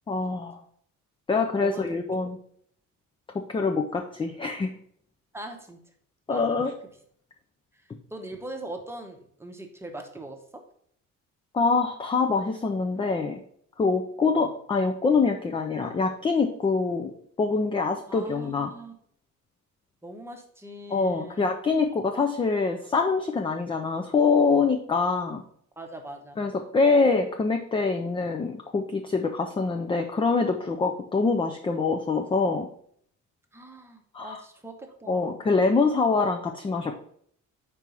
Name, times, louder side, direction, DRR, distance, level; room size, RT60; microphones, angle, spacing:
voice 1, 0.1-0.6 1.3-2.4 3.5-4.7 6.3-6.7 11.5-13.4 13.8-17.1 17.4-18.7 20.9-25.4 26.4-32.7 34.1-34.4 35.1-37.0, left 4 dB, 15° left, 4 dB, 0.3 m, -25 dB
voice 2, 5.3-5.8 6.3-6.6 8.1-10.6 14.4-14.5 18.1-18.9 20.0-21.5 25.8-26.4 33.5-35.4, right 1 dB, 10° right, 3 dB, 0.8 m, -41 dB
4.6 x 4.5 x 5.2 m, 0.65 s
cardioid pair, 145°, 32 cm